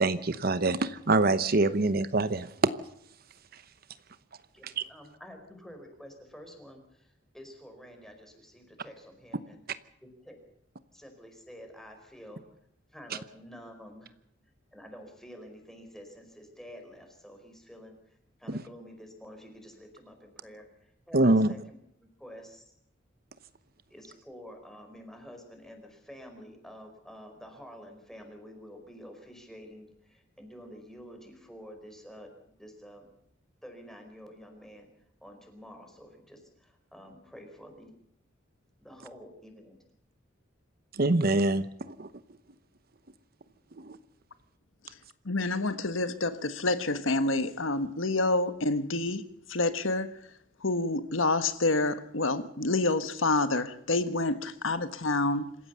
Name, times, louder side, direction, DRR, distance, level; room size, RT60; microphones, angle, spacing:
voice 1, 0.0-2.7 4.6-4.8 18.5-18.6 21.1-21.5 40.9-42.1 43.8-44.0, right 2 dB, 50° right, 0.9 m, -25 dB
voice 2, 4.5-9.6 10.0-10.4 10.9-12.4 12.9-14.2 14.7-22.7 23.9-33.1 33.6-34.9 35.2-37.9 38.8-39.8, equal, ahead, 4.9 m, -49 dB
voice 3, 45.2-49.2 49.5-50.1 50.6-55.5, left 2 dB, 80° left, 1.4 m, -28 dB
27.0 x 15.0 x 6.9 m
head